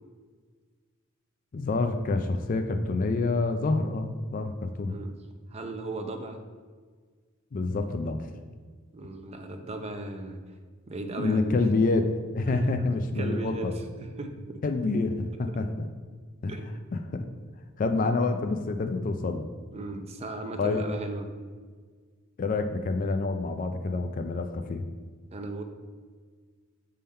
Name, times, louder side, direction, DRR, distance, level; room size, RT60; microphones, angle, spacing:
voice 1, 1.5-5.0 7.5-8.3 11.2-13.7 14.6-15.9 16.4-16.6 16.9-17.2 17.8-19.4 20.6-20.9 22.4-24.8, left 3 dB, 40° left, 6 dB, 0.4 m, -27 dB
voice 2, 5.5-6.4 8.9-10.4 10.9-11.6 12.5-12.6 13.2-13.7 14.0-14.6 16.5-16.7 17.9-18.1 19.7-21.3 25.3-25.6, right 2 dB, 30° right, 6 dB, 0.6 m, -36 dB
6.9 x 3.8 x 4.3 m, 1.5 s
head